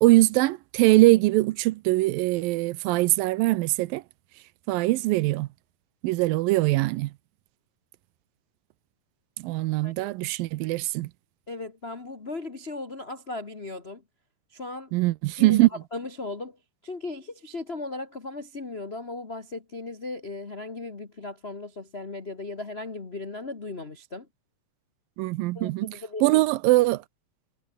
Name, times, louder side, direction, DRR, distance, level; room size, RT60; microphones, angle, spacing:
voice 1, 0.0-4.0 4.7-5.5 6.0-7.1 9.4-11.1 14.9-15.7 25.2-25.9 26.2-27.0, right 19 dB, 85° right, 2.5 m, -22 dB
voice 2, 9.8-10.1 11.5-14.0 14.5-14.9 15.4-24.3 25.5-26.4, left 2 dB, 55° left, 0.6 m, -37 dB
omnidirectional pair, 4.0 m